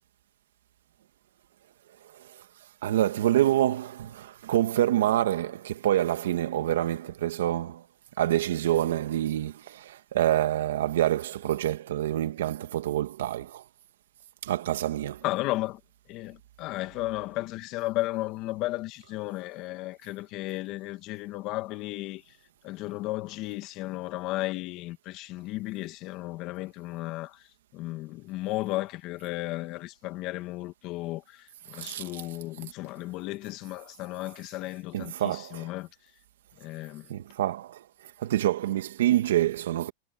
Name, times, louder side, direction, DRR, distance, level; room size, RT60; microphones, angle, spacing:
voice 1, 2.1-2.4 2.8-7.9 8.2-13.6 14.4-15.3 31.7-32.2 34.9-35.7 37.1-39.9, right 12 dB, 80° right, 1.8 m, -27 dB
voice 2, 15.2-15.8 16.1-22.3 22.6-27.5 27.7-35.9 36.6-37.1, left 18 dB, 40° left, 2.3 m, -34 dB
supercardioid pair, 140°, 0 cm